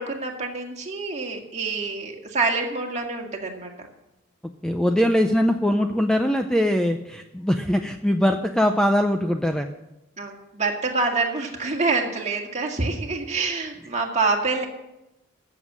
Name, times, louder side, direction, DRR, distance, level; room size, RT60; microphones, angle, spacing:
voice 1, 0.0-3.9 10.2-14.7, right 3 dB, 35° right, 1 dB, 2.0 m, -26 dB
voice 2, 4.6-9.7, equal, 5° left, 5 dB, 0.5 m, -21 dB
14.5 x 7.3 x 7.4 m, 0.94 s
head